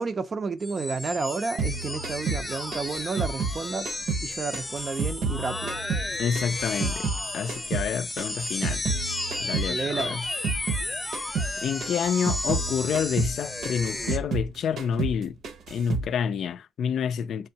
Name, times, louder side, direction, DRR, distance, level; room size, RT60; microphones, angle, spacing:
voice 1, 0.0-3.9 4.2-5.8 9.6-10.2, right 4 dB, 40° right, 0.4 m, -31 dB
sound 1, 0.6-14.2, left 2 dB, 15° left, 0.8 m, -33 dB
sound 2, 1.6-4.3 4.5-7.2 7.5-10.9 11.1-11.5 11.8-14.5 14.8-15.2 15.4-16.1, right 4 dB, 70° right, 0.7 m, -30 dB
voice 2, 6.2-8.8 9.4-10.3 11.6-15.4 15.7-17.5, left 7 dB, 65° left, 0.4 m, -28 dB
4.5 x 3.5 x 2.8 m
cardioid pair, 90°, 0 cm